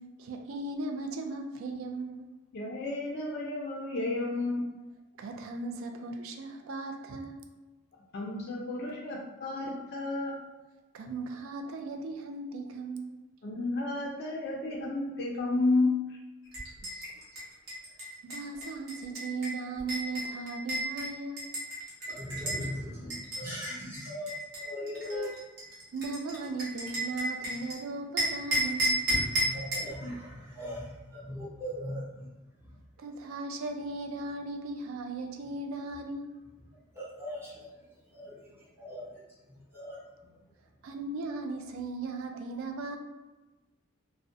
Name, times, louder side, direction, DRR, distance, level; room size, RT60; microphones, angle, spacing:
voice 1, 0.2-2.3 5.2-7.5 10.9-13.2 16.8-17.0 17.3-17.4 18.2-21.5 25.9-29.0 33.0-36.4 40.8-43.0, right 3 dB, 70° right, 4 dB, 0.3 m, -37 dB
voice 2, 2.5-4.6 8.1-10.4 13.4-16.2, left 2 dB, 50° left, -2 dB, 0.3 m, -31 dB
sound 1, 16.5-22.7 23.1-27.8 28.2-29.9, right 1 dB, 50° right, 0.9 m, -33 dB
voice 3, 22.0-25.3 29.3-32.8 36.7-40.4, equal, 10° right, -8 dB, 0.7 m, -40 dB
2.4 x 2.0 x 2.5 m, 1.1 s
head